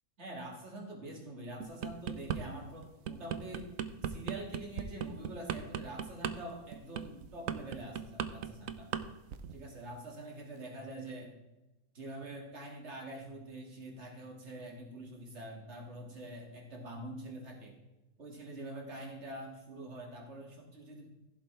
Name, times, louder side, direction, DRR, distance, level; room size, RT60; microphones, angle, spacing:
voice 1, 0.2-3.7 4.0-8.9 9.5-11.3 11.9-17.8 18.2-21.2, right 1 dB, 45° right, 1 dB, 2.5 m, -45 dB
sound 1, 1.6-2.4 2.8-9.0 9.3-9.6, right 9 dB, 65° right, 1.0 m, -36 dB
15.5 x 7.6 x 3.3 m, 1.0 s
omnidirectional pair, 1.7 m